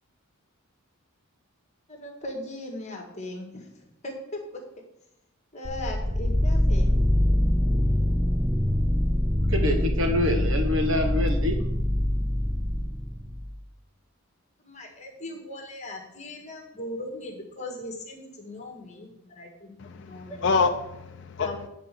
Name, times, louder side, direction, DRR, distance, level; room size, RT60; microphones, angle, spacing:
voice 1, 1.9-4.4 5.5-7.0 14.6-20.5 21.4-21.7, left 1 dB, 30° left, 1 dB, 1.7 m, -39 dB
sound 1, 5.7-13.5, left 1 dB, 10° right, 1.1 m, -24 dB
voice 2, 9.5-11.6, left 1 dB, 65° right, 4 dB, 1.4 m, -26 dB
voice 3, 19.8-21.7, left 4 dB, 55° left, 6 dB, 0.5 m, -27 dB
9.3 x 4.1 x 6.8 m, 0.85 s
head